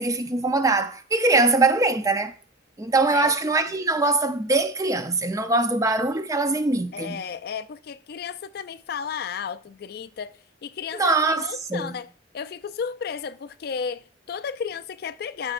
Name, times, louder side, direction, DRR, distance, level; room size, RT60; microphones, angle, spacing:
voice 1, 0.0-2.3 2.8-7.2 10.9-12.0, right 3 dB, 20° right, 0.5 m, -22 dB
voice 2, 6.9-12.1 12.3-15.5, left 6 dB, 55° left, 0.3 m, -33 dB
13.0 x 5.2 x 2.5 m
head